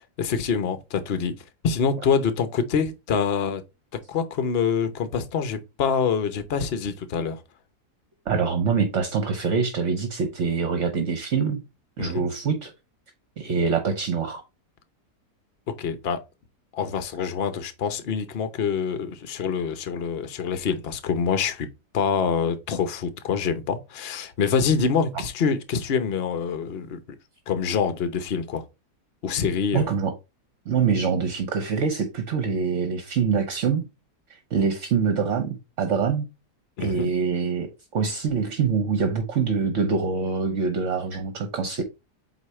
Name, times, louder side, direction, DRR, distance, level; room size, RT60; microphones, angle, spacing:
voice 1, 0.2-1.4 1.6-3.6 3.9-7.4 12.0-12.2 15.7-16.2 16.7-21.7 21.9-27.0 27.5-28.6 29.2-29.9 36.8-37.1, left 6 dB, 45° left, 0.9 m, -25 dB
voice 2, 8.3-11.6 12.0-12.7 13.4-14.4 25.1-25.2 29.7-30.1 30.7-33.9 34.5-36.3 36.8-41.8, right 5 dB, 55° right, 1.1 m, -25 dB
8.1 x 2.8 x 4.2 m
omnidirectional pair, 1.7 m